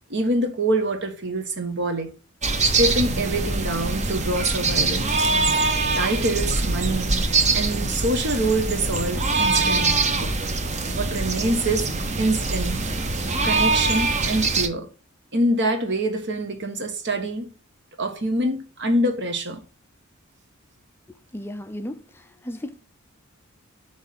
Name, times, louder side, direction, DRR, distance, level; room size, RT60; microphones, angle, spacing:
voice 1, 0.1-2.1 2.6-5.1 5.9-7.1 7.5-10.3 10.9-11.9 12.2-12.8 13.4-14.9 15.3-17.5 18.0-19.6, right 1 dB, 60° right, 1.3 m, -25 dB
sound 1, 2.4-14.7, right 3 dB, 35° right, 0.9 m, -23 dB
voice 2, 21.1-22.8, left 1 dB, 10° left, 0.5 m, -36 dB
8.0 x 3.2 x 5.7 m
head